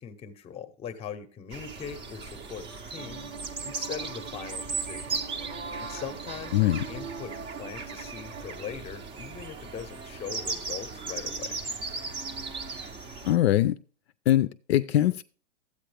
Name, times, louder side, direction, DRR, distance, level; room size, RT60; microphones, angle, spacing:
voice 1, 0.0-3.3 3.6-5.2 5.8-11.6, left 7 dB, 15° left, 0.8 m, -41 dB
sound 1, 1.5-13.4, right 4 dB, 15° right, 0.6 m, -37 dB
Bowed string instrument, 3.0-8.6, right 6 dB, 80° right, 1.0 m, -45 dB
voice 2, 6.5-6.9 13.2-13.8 14.3-15.2, left 13 dB, 60° left, 0.5 m, -22 dB
12.5 x 8.5 x 3.4 m
hypercardioid pair, 145°, 36 cm